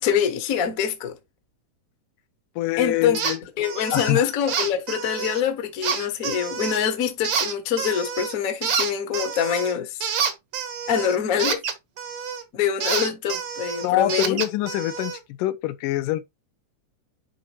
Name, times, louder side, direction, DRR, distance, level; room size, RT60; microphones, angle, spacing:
voice 1, 0.0-1.2 2.8-3.2 3.6-10.1 10.9-11.6 12.5-14.4, left 8 dB, 65° left, 0.8 m, -25 dB
voice 2, 2.6-3.4 3.9-4.3 13.8-16.2, left 15 dB, 85° left, 2.2 m, -25 dB
sound 1, 3.1-3.4 3.6-4.1 4.5-5.4 5.8-6.8 7.2-8.4 8.6-12.4 12.8-15.2, right 7 dB, 65° right, 1.1 m, -28 dB
10.0 x 4.0 x 3.0 m
omnidirectional pair, 3.7 m